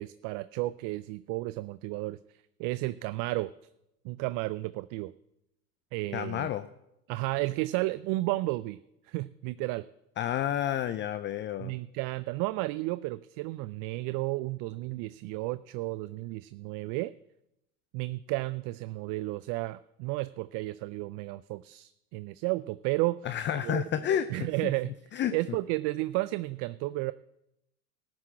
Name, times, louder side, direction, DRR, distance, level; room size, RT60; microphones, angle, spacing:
voice 1, 0.0-3.5 4.0-5.1 5.9-6.5 7.1-8.8 9.0-9.9 11.6-17.1 17.9-23.8 24.3-24.9 25.3-27.1, right 20 dB, 50° right, 16 dB, 0.4 m, -32 dB
voice 2, 6.1-6.7 10.2-11.7 23.2-24.7 25.1-25.3, left 10 dB, 25° left, 13 dB, 0.5 m, -30 dB
13.5 x 6.1 x 8.5 m, 0.85 s
hypercardioid pair, 90°, 45 cm